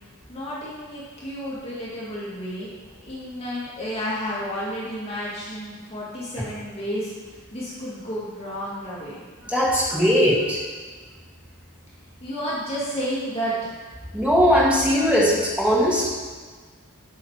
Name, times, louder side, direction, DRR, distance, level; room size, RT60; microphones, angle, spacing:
voice 1, 0.3-2.7 3.0-7.1 7.5-9.2 12.2-13.8, equal, 25° left, -8 dB, 2.2 m, -31 dB
voice 2, 9.4-10.6 14.1-16.1, equal, 5° right, -6 dB, 1.8 m, -19 dB
8.5 x 6.5 x 4.7 m, 1.5 s
head